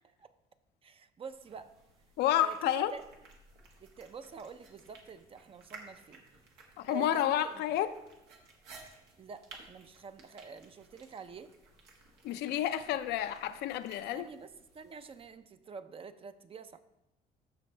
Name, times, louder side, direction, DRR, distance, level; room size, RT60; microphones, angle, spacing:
voice 1, 0.8-1.7 2.3-2.6 2.9-3.0 3.8-6.2 6.9-7.5 9.2-11.5 14.1-14.5 14.7-16.8, right 5 dB, 35° right, 10 dB, 0.6 m, -47 dB
sound 1, 1.3-15.3, right 3 dB, 85° right, 1.7 m, -57 dB
voice 2, 2.2-2.9 6.8-7.9 12.2-14.3, left 11 dB, 75° left, 11 dB, 0.5 m, -30 dB
14.0 x 5.2 x 3.3 m, 0.92 s
cardioid pair, 110°, 17 cm